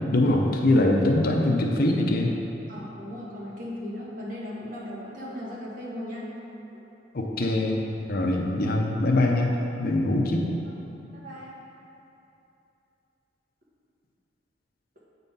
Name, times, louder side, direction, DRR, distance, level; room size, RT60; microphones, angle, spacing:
voice 1, 0.0-2.3 7.1-9.5 9.8-10.5, left 1 dB, 55° left, 1 dB, 0.7 m, -23 dB
voice 2, 2.7-6.3 6.7-6.8 11.1-11.5, left 1 dB, 45° right, -6 dB, 1.6 m, -37 dB
8.1 x 4.1 x 5.4 m, 2.9 s
head